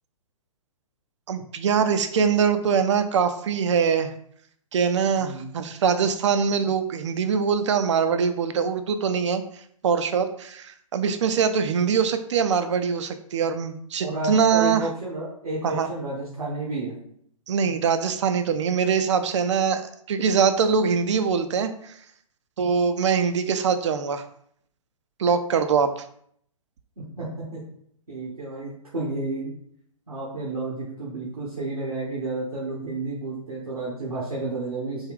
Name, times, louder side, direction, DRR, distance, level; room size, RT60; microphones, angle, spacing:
voice 1, 1.3-4.1 4.7-9.4 9.8-14.9 15.6-15.9 17.5-21.9 22.6-24.2 25.2-26.0, right 6 dB, 55° right, 10 dB, 0.4 m, -23 dB
voice 2, 5.1-5.5 14.0-16.9 27.0-27.3 27.5-27.6 28.1-29.5 30.1-35.1, right 2 dB, 85° right, -7 dB, 1.1 m, -31 dB
3.5 x 2.3 x 3.5 m, 0.65 s
figure-of-eight pair, 125°, 18 cm